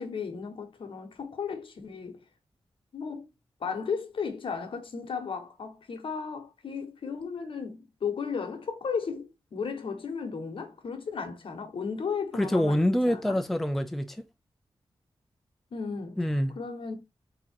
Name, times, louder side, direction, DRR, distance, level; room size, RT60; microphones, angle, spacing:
voice 1, 0.0-2.2 2.9-3.3 3.6-13.4 15.7-16.2 16.5-16.9, left 5 dB, 65° left, 1.1 m, -35 dB
voice 2, 12.3-14.3 16.2-16.5, left 1 dB, 5° left, 0.4 m, -26 dB
3.7 x 2.8 x 4.4 m
wide cardioid pair, 140°, 9 cm